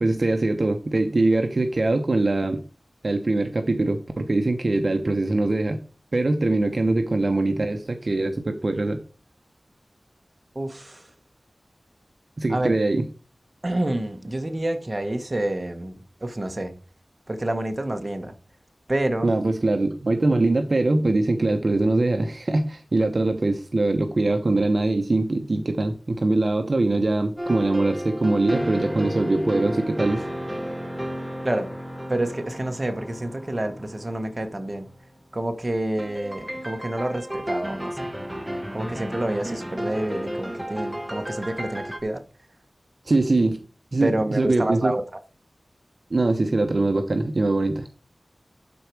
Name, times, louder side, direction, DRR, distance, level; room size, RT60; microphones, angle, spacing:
voice 1, 0.0-2.6 3.0-5.8 6.1-9.0 12.4-13.1 19.2-30.2 43.0-43.6 43.9-44.9 46.1-47.9, right 2 dB, 50° right, 0.9 m, -22 dB
voice 2, 10.5-11.1 12.5-12.8 13.6-16.7 17.3-18.3 18.9-19.3 31.4-31.7 32.1-34.9 35.3-38.1 38.7-42.2 44.0-45.0, right 1 dB, 30° right, 1.3 m, -28 dB
sound 1, 27.4-35.1 36.0-42.0, equal, 5° right, 1.2 m, -33 dB
12.0 x 4.5 x 4.7 m
wide cardioid pair, 80°, 0 cm